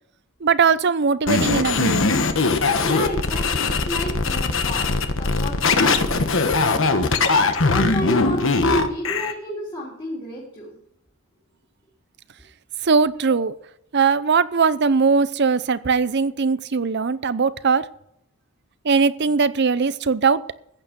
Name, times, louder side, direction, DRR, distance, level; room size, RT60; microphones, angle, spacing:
voice 1, 0.4-2.1 12.8-13.5 13.9-17.8 18.8-20.4, right 5 dB, 55° right, 16 dB, 0.6 m, -20 dB
sound 1, 1.3-9.3, left 3 dB, 65° left, 1.2 m, -20 dB
voice 2, 2.5-4.9 5.2-10.8 13.3-13.4, left 1 dB, 25° left, -6 dB, 3.4 m, -32 dB
15.0 x 9.1 x 5.3 m, 0.76 s
head